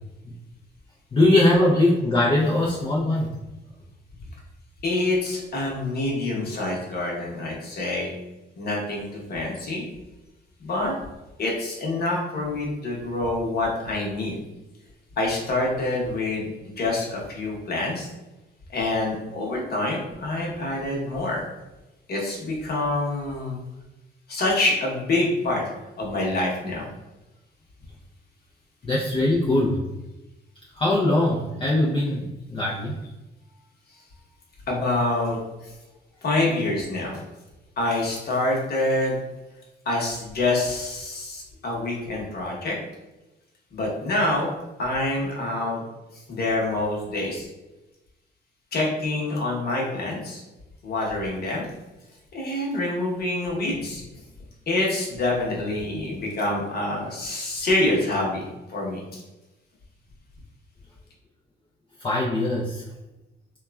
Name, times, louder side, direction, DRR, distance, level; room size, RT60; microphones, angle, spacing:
voice 1, 1.1-3.3 28.8-29.8 30.7-33.0 62.0-62.8, left 1 dB, 25° left, -5 dB, 0.5 m, -21 dB
voice 2, 4.8-8.1 8.6-9.8 10.6-10.9 11.4-14.4 15.2-16.5 16.8-18.1 18.7-21.5 22.1-23.6 24.3-26.9 34.7-35.7 36.2-37.2 37.8-39.2 39.8-42.8 43.7-44.5 44.8-45.8 46.1-47.5 48.7-50.4 50.8-51.7 52.3-54.0 54.7-59.2, left 2 dB, 50° left, -3 dB, 1.0 m, -26 dB
2.9 x 2.3 x 2.2 m, 1.0 s
cardioid pair, 90°, 20 cm